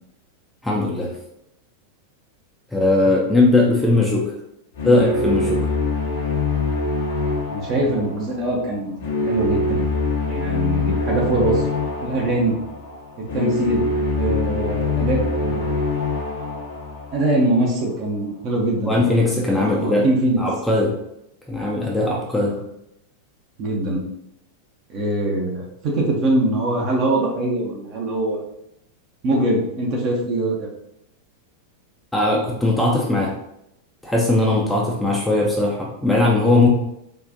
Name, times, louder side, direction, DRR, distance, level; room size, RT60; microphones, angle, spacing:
voice 1, 0.6-1.1 2.7-4.3 4.8-5.7 18.9-20.0 20.4-20.9 21.5-22.6 32.1-33.3 34.0-36.7, left 2 dB, 5° left, -3 dB, 0.5 m, -19 dB
sound 1, 4.7-17.8, left 3 dB, 60° left, 0.7 m, -24 dB
voice 2, 7.5-8.9 9.2-9.8 10.3-11.6 12.0-12.6 13.2-13.9 14.1-15.8 17.1-18.9 19.5-20.4 23.6-24.0 24.9-28.4 29.2-30.7, right 1 dB, 40° right, -1 dB, 0.8 m, -22 dB
3.8 x 2.4 x 2.6 m, 0.81 s
figure-of-eight pair, 90°, 0 cm